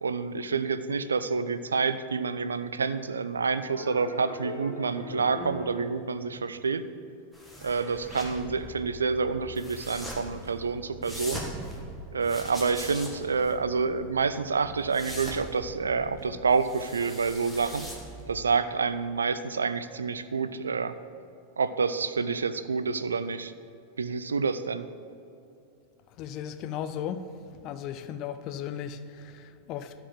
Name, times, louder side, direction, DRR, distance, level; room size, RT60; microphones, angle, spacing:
voice 1, 0.0-6.8 7.6-11.4 12.1-17.9 18.3-21.0 21.6-23.5 24.0-24.9, right 5 dB, 70° right, 0.4 m, -28 dB
sound 1, 3.7-5.9, left 2 dB, 85° left, 2.2 m, -39 dB
sound 2, 7.3-18.4, equal, ahead, 1.7 m, -42 dB
voice 2, 26.1-27.3 27.6-29.9, left 9 dB, 40° left, 0.5 m, -36 dB
12.5 x 4.8 x 7.4 m
figure-of-eight pair, 90°, 0 cm